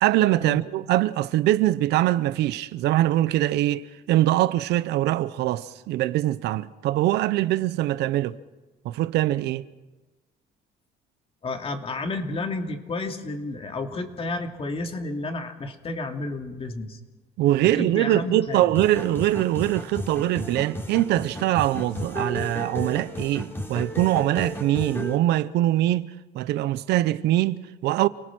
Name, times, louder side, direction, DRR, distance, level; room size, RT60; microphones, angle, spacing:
voice 1, 0.0-8.4 8.8-9.6 17.4-26.1 26.3-28.1, right 14 dB, 80° right, 0.8 m, -23 dB
voice 2, 11.4-17.0 17.6-18.6, left 2 dB, 35° left, 2.6 m, -31 dB
sound 1, 18.7-25.2, equal, 15° left, 3.3 m, -33 dB
29.5 x 19.0 x 6.1 m
cardioid pair, 110°, 17 cm